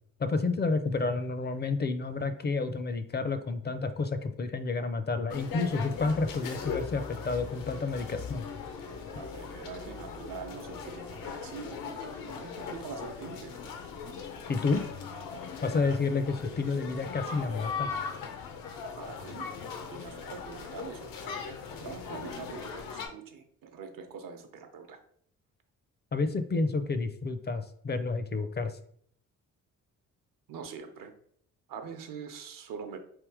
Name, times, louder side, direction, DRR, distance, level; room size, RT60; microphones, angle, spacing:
voice 1, 0.2-8.5 14.5-14.8 15.6-17.9 26.1-28.8, left 3 dB, 30° left, 9 dB, 0.5 m, -30 dB
sound 1, 5.3-23.1, left 5 dB, 85° left, 0.8 m, -39 dB
voice 2, 9.1-11.9 12.2-13.6 19.0-21.2 21.8-25.0 30.5-31.1 31.7-33.0, right 6 dB, 75° right, 6 dB, 0.8 m, -43 dB
3.5 x 2.8 x 4.8 m, 0.63 s
cardioid pair, 90°, 33 cm